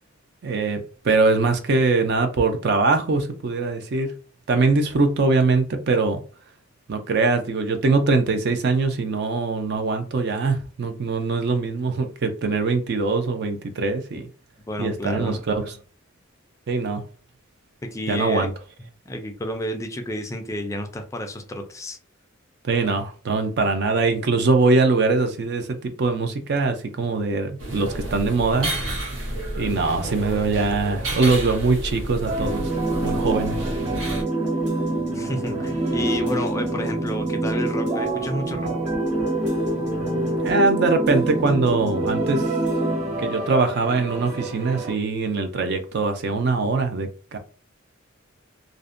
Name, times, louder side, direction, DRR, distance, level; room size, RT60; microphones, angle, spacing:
voice 1, 0.4-4.1 4.5-6.2 6.9-14.3 14.8-15.8 16.7-17.0 18.1-18.5 22.6-29.3 29.6-32.7 33.0-33.6 40.4-42.5 43.2-47.4, right 3 dB, 55° right, 0.4 m, -22 dB
voice 2, 14.7-15.4 17.8-18.5 19.1-22.0 35.1-38.7, left 1 dB, 15° left, 0.3 m, -30 dB
sound 1, 27.6-34.2, right 1 dB, 75° right, 0.8 m, -30 dB
sound 2, 32.3-44.9, right 2 dB, 35° right, 1.1 m, -26 dB
2.5 x 2.1 x 2.5 m
head